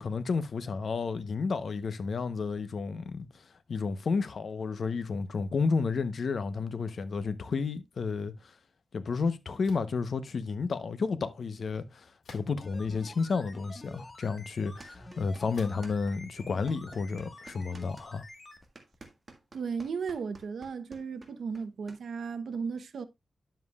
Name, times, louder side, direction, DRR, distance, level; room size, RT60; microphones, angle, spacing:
voice 1, 0.0-3.3 3.7-8.5 8.9-18.2, left 4 dB, 60° left, 0.8 m, -31 dB
sound 1, 9.6-10.0 12.2-12.8 13.5-13.6 15.5-15.9, left 3 dB, 75° left, 2.3 m, -50 dB
sound 2, 12.6-18.7 18.9-19.0, left 2 dB, 25° left, 1.4 m, -49 dB
sound 3, 14.8-16.1 16.4-22.0, right 3 dB, 35° right, 1.6 m, -51 dB
voice 2, 19.5-23.0, right 5 dB, 75° right, 0.8 m, -35 dB
10.0 x 7.4 x 2.3 m
wide cardioid pair, 135°, 0 cm